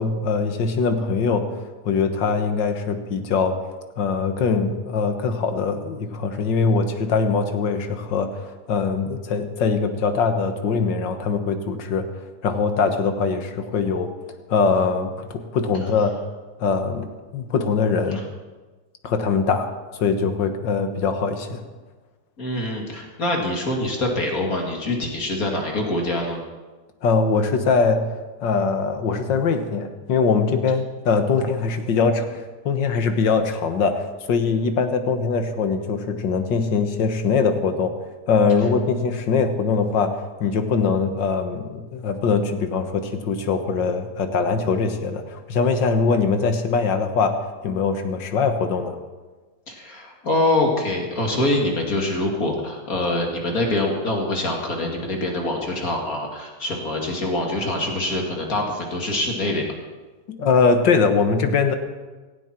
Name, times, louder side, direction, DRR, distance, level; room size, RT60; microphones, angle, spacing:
voice 1, 0.0-1.5 1.8-3.6 4.0-12.1 12.4-14.1 14.5-16.2 16.6-18.2 19.0-21.6 27.0-28.0 28.4-37.9 38.3-40.1 40.4-47.4 47.6-49.0 60.4-61.7, left 5 dB, 75° left, 7 dB, 2.0 m, -22 dB
voice 2, 22.4-26.4 49.7-59.7, left 2 dB, 50° left, 0 dB, 2.7 m, -24 dB
17.5 x 16.5 x 4.5 m, 1.3 s
omnidirectional pair, 2.0 m